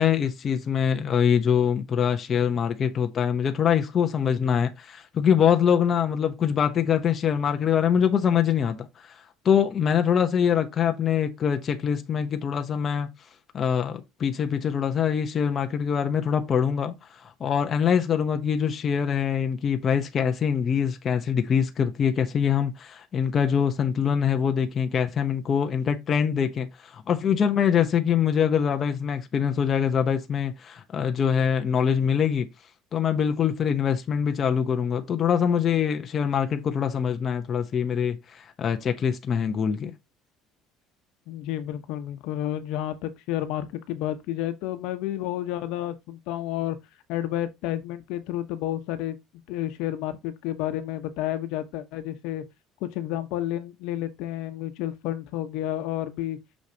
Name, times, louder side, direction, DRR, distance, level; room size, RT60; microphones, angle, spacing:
voice 1, 0.0-13.1 13.5-32.5 32.9-39.9, left 7 dB, 30° left, 0.9 m, -24 dB
voice 2, 41.3-46.8 47.1-49.2 49.5-52.4 52.8-56.4, left 13 dB, 65° left, 1.1 m, -30 dB
6.5 x 6.4 x 2.8 m
cardioid pair, 165°, 0 cm